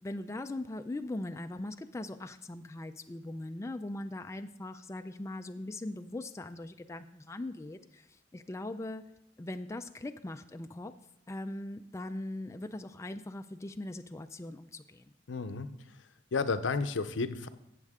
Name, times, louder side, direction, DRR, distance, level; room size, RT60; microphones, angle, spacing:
voice 1, 0.0-9.1 9.4-10.9 11.3-15.1, left 1 dB, 15° left, 8 dB, 0.3 m, -40 dB
voice 2, 15.3-17.5, left 4 dB, 80° left, 11 dB, 0.6 m, -33 dB
14.5 x 7.5 x 3.6 m, 0.82 s
head